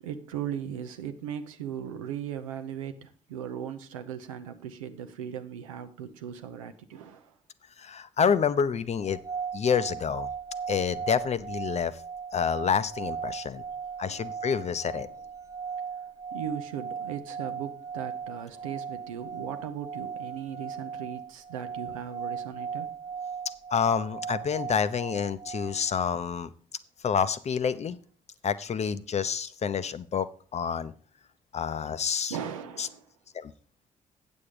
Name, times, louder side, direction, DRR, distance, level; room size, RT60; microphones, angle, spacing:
voice 1, 0.0-7.4 14.0-14.4 15.0-15.2 16.3-22.9 32.3-33.1, right 9 dB, 85° right, 8 dB, 0.6 m, -38 dB
voice 2, 7.8-9.2 9.5-10.3 10.7-11.9 12.3-13.6 14.0-15.1 23.7-26.5 27.0-28.0 28.4-30.9 31.5-32.4 32.8-32.9 33.3-33.5, left 7 dB, 40° left, 14 dB, 0.6 m, -28 dB
sound 1, 9.0-26.1, right 6 dB, 20° right, 0.8 m, -38 dB
8.5 x 7.1 x 4.9 m, 0.43 s
hypercardioid pair, 40°, 17 cm